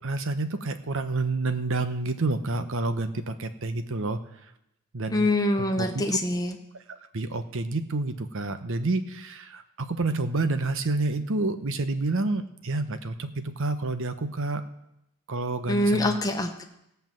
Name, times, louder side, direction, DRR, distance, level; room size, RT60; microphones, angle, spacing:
voice 1, 0.0-4.2 4.9-5.3 5.5-6.2 6.9-14.6 15.3-16.1, right 2 dB, 60° right, 10 dB, 0.9 m, -29 dB
voice 2, 5.1-6.5 15.7-16.6, left 1 dB, 15° left, 4 dB, 1.1 m, -25 dB
16.5 x 5.7 x 7.6 m, 0.83 s
head